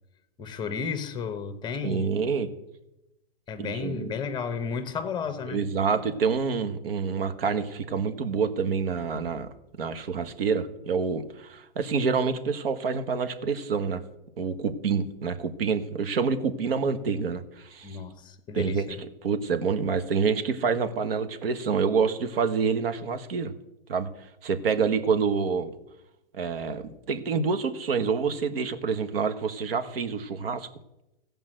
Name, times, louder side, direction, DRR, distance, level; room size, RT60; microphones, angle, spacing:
voice 1, 0.4-2.1 3.5-5.6 17.8-19.0, left 6 dB, 15° left, 0.9 m, -33 dB
voice 2, 1.8-2.5 3.6-4.1 5.5-9.5 9.8-14.0 14.4-18.0 18.5-23.5 23.9-24.1 24.4-25.7 26.3-30.7, right 5 dB, 75° right, 1.4 m, -27 dB
15.0 x 5.4 x 7.7 m
hypercardioid pair, 135°, 30 cm